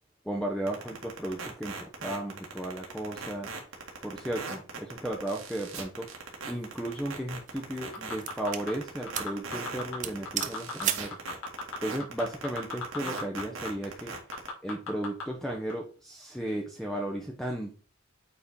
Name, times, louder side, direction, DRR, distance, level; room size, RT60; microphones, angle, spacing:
voice 1, 0.2-3.5 4.0-6.1 6.5-11.2 11.8-14.1 14.6-17.7, right 1 dB, ahead, 0 dB, 0.8 m, -35 dB
sound 1, 0.7-14.5, right 4 dB, 85° right, 2.0 m, -39 dB
sound 2, 6.5-6.8 7.5-8.7 9.1-9.4 9.7-9.8 10.0-11.2, right 10 dB, 40° right, 0.6 m, -34 dB
sound 3, 7.9-8.7 9.1-10.0 10.3-10.8 11.1-13.4 13.7-13.8 14.1-15.2 15.7-15.8, left 5 dB, 70° left, 2.7 m, -36 dB
8.4 x 4.2 x 3.7 m, 0.39 s
head